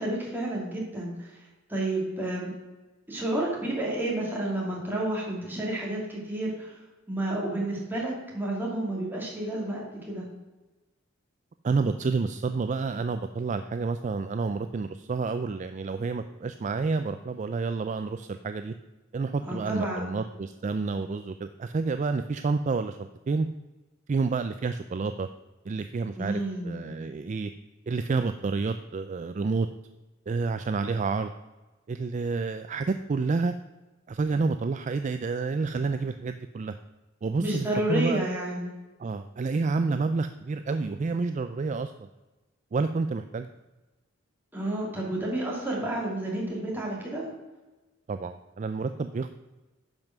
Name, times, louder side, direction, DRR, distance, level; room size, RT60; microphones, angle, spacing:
voice 1, 0.0-1.4 1.7-2.5 3.1-6.8 7.1-10.3 19.4-20.1 26.2-26.9 37.4-38.7 44.5-47.3, right 1 dB, 10° right, -4 dB, 2.7 m, -30 dB
voice 2, 11.6-18.7 19.1-23.5 24.1-25.3 25.7-27.5 27.9-29.7 30.3-31.3 31.9-33.5 34.1-36.8 37.2-38.2 39.0-42.1 42.7-43.5 48.1-49.3, right 4 dB, 35° right, 9 dB, 0.3 m, -29 dB
10.5 x 5.5 x 6.0 m, 1.1 s
head